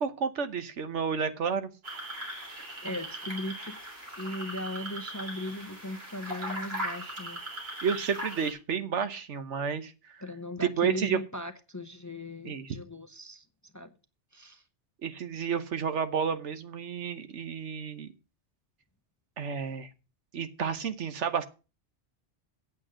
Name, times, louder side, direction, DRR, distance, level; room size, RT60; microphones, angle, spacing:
voice 1, 0.0-1.7 7.8-10.2 10.6-11.2 12.4-12.7 15.0-18.1 19.4-19.9 20.3-21.4, right 6 dB, 80° right, 1.3 m, -31 dB
sound 1, 1.8-8.5, right 1 dB, 60° right, 3.6 m, -39 dB
voice 2, 2.8-3.7 4.1-7.4 10.2-13.4 13.7-13.9 14.3-14.6, left 1 dB, 20° left, 0.7 m, -38 dB
8.8 x 7.1 x 6.2 m
omnidirectional pair, 1.2 m